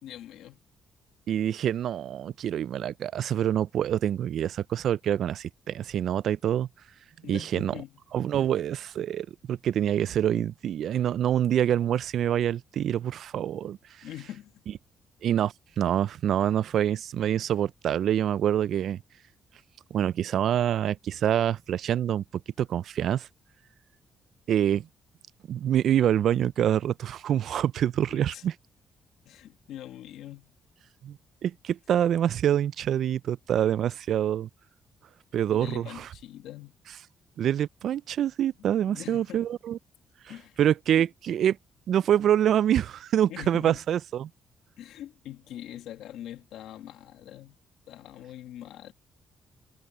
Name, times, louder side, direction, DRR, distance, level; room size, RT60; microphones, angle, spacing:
voice 1, 0.0-0.6 7.2-8.0 14.0-14.5 28.1-28.4 29.2-30.6 35.5-36.7 38.9-39.5 40.3-40.6 41.0-41.1 43.3-43.8 44.8-47.6 47.9-48.9, left 12 dB, 85° left, 1.8 m, -43 dB
voice 2, 1.3-6.7 7.3-7.7 8.1-13.8 15.2-19.0 19.9-22.2 22.6-23.3 24.5-24.9 25.5-28.5 31.0-31.2 31.4-34.5 35.3-36.1 37.4-39.8 40.6-41.6 41.9-44.3, right 10 dB, 70° right, 0.3 m, -26 dB
cardioid pair, 90°, 0 cm